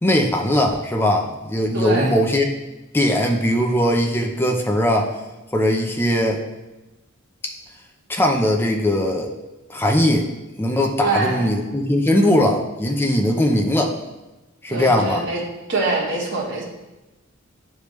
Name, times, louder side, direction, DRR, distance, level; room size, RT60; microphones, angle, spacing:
voice 1, 0.0-2.5 2.9-5.1 5.5-6.4 7.4-7.5 8.1-9.3 9.7-10.3 10.6-14.0 14.6-15.2, left 1 dB, 10° left, 1 dB, 0.6 m, -19 dB
voice 2, 1.7-2.1 11.0-11.5 14.7-15.4 15.7-16.6, right 3 dB, 60° right, -3 dB, 1.4 m, -24 dB
10.0 x 3.4 x 3.1 m, 1.0 s
head